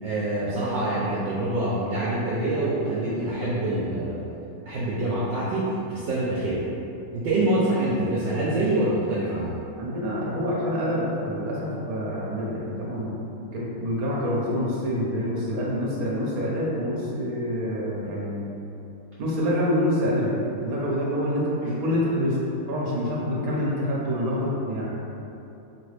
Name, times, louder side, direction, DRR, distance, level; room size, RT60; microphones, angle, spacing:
voice 1, 0.0-4.2 4.7-5.6 5.9-6.6 7.1-9.6, right 1 dB, 70° right, -8 dB, 1.2 m, -25 dB
voice 2, 9.7-13.2 13.5-18.5 19.2-22.4 22.7-24.9, equal, 55° right, -5 dB, 1.1 m, -26 dB
4.4 x 3.0 x 3.2 m, 2.9 s
omnidirectional pair, 2.4 m